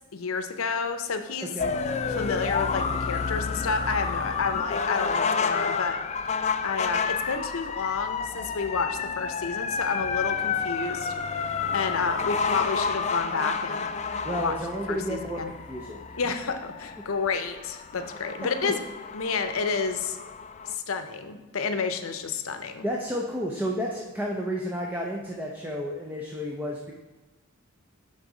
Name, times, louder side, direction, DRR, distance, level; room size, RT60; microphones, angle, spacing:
voice 1, 0.1-1.5 2.1-6.0 6.6-13.9 14.4-14.5 14.9-15.5 16.2-18.8 19.1-20.2 20.7-22.9, left 5 dB, 75° left, 8 dB, 0.7 m, -30 dB
sound 1, 1.6-20.7, left 5 dB, 30° left, 0.3 m, -30 dB
voice 2, 14.2-16.0 18.4-18.7 22.8-26.9, equal, 10° right, -1 dB, 0.6 m, -31 dB
9.2 x 4.0 x 4.9 m, 1.2 s
head